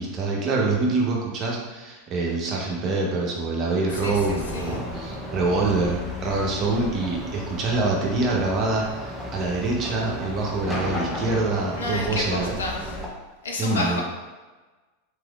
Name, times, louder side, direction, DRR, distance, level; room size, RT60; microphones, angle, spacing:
voice 1, 0.0-12.5 13.6-14.0, right 3 dB, 35° right, -2 dB, 0.8 m, -25 dB
sound 1, 3.9-13.1, left 1 dB, 5° left, 0.6 m, -34 dB
voice 2, 4.0-4.7 11.8-12.9 13.4-14.0, left 2 dB, 70° left, 0 dB, 0.6 m, -30 dB
3.4 x 3.3 x 2.3 m, 1.2 s
figure-of-eight pair, 85°, 0 cm